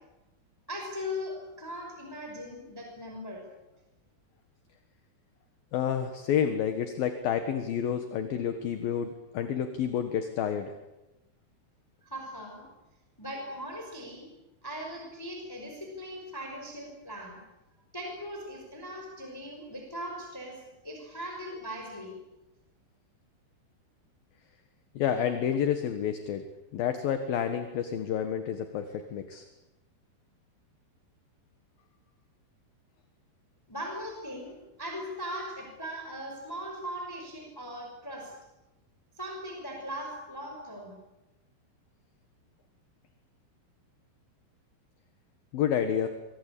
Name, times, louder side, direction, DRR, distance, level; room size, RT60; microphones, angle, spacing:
voice 1, 0.7-3.5 12.0-12.7 13.2-14.3 14.6-17.4 17.9-22.2 33.7-38.3 39.1-41.0, equal, 5° left, 2 dB, 4.9 m, -39 dB
voice 2, 5.7-10.7 24.9-26.4 26.7-29.4 45.5-46.1, left 8 dB, 60° left, 8 dB, 2.9 m, -29 dB
26.5 x 24.5 x 8.5 m, 0.98 s
omnidirectional pair, 5.4 m